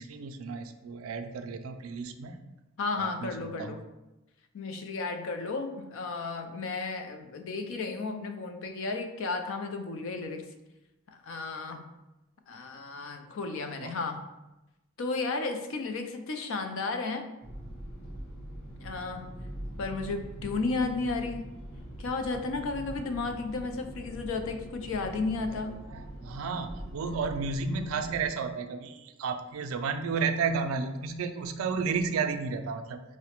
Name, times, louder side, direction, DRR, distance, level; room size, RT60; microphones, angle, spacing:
voice 1, 0.0-2.5 3.0-3.8 13.8-14.0 25.9-33.0, right 5 dB, 75° right, 7 dB, 0.3 m, -32 dB
voice 2, 2.8-3.8 4.5-10.5 11.1-11.8 12.5-14.2 15.0-17.3 18.8-19.3 19.8-21.5 22.0-25.7, left 3 dB, 65° left, 6 dB, 0.4 m, -33 dB
sound 1, 17.4-28.3, right 1 dB, 85° left, 1.1 m, -43 dB
4.7 x 2.1 x 2.9 m, 0.99 s
head